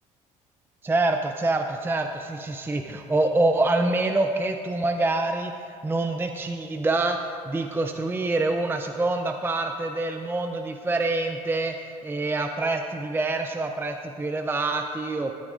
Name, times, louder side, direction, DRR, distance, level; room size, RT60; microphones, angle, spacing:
voice 1, 0.8-15.4, right 2 dB, 15° right, 5 dB, 0.5 m, -26 dB
13.5 x 9.6 x 2.5 m, 2.5 s
supercardioid pair, 80°, 15 cm